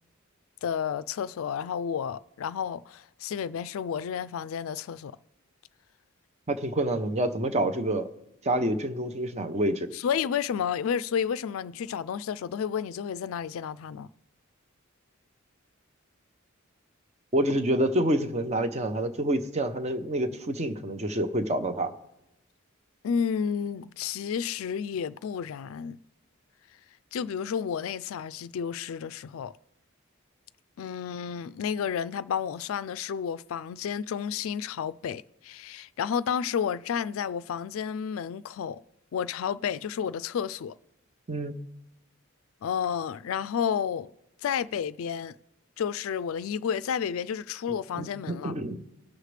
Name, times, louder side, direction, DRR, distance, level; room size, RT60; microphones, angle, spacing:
voice 1, 0.6-5.2 9.9-14.1 23.0-26.0 27.1-29.5 30.8-38.8 39.1-40.8 42.6-44.1 44.4-45.3 45.8-48.5, left 7 dB, 70° left, 0.3 m, -31 dB
voice 2, 6.5-8.1 8.4-9.9 17.3-21.9 41.3-41.5 48.0-48.8, right 1 dB, 35° right, 0.8 m, -27 dB
19.0 x 6.5 x 3.3 m
head